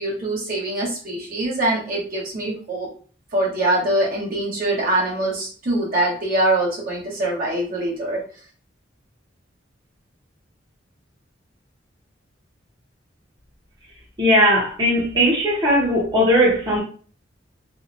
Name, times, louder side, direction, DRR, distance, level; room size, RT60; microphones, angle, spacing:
voice 1, 0.0-2.9 3.3-8.2, right 1 dB, 50° right, -4 dB, 1.0 m, -23 dB
voice 2, 14.2-16.8, equal, 25° right, -6 dB, 0.8 m, -18 dB
2.7 x 2.1 x 2.5 m, 0.42 s
head